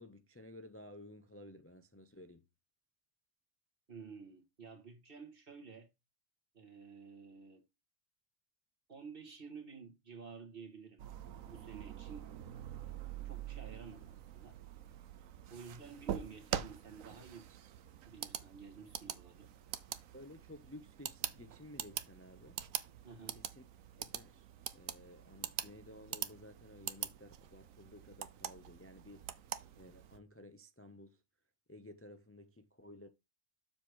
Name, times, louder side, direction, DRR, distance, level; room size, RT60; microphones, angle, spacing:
voice 1, 0.0-2.4 20.1-22.6 23.4-23.6 24.0-24.5 24.7-29.3 29.8-31.2 31.7-33.1, left 1 dB, 15° left, 0.5 m, -54 dB
voice 2, 3.9-5.9 6.5-7.6 8.9-11.0 11.5-12.3 13.2-14.6 15.5-17.5 18.0-19.5 23.0-23.4, right 5 dB, 45° right, 2.1 m, -51 dB
sound 1, 11.0-30.2, right 10 dB, 85° right, 1.2 m, -45 dB
7.4 x 3.2 x 6.2 m
omnidirectional pair, 1.4 m